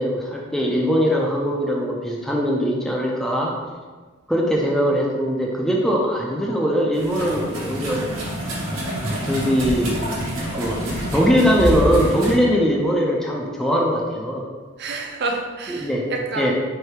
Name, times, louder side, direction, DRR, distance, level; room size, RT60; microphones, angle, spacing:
voice 1, 0.0-3.5 4.3-8.0 9.2-10.0 10.6-10.8 11.1-14.5 15.7-16.1 16.4-16.5, equal, ahead, -2 dB, 0.4 m, -21 dB
sound 1, 6.9-12.3, right 1 dB, 90° right, 1.2 m, -28 dB
voice 2, 14.8-16.5, right 3 dB, 55° right, 1 dB, 0.6 m, -28 dB
3.3 x 2.7 x 4.4 m, 1.4 s
head